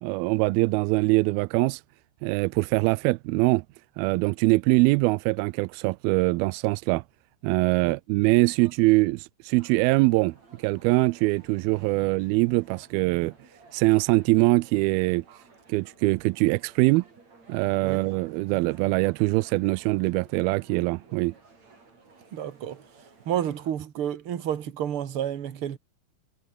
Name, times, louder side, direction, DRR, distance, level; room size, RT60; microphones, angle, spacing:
voice 1, 0.0-1.8 2.2-3.6 4.0-7.0 7.4-13.3 13.7-15.2 15.7-17.0 17.5-21.3, right 23 dB, 85° right, 2.2 m, -23 dB
sound 1, 9.5-23.7, right 3 dB, 40° right, 7.4 m, -55 dB
voice 2, 22.3-22.8 23.2-25.8, right 10 dB, 55° right, 1.5 m, -30 dB
omnidirectional pair, 4.8 m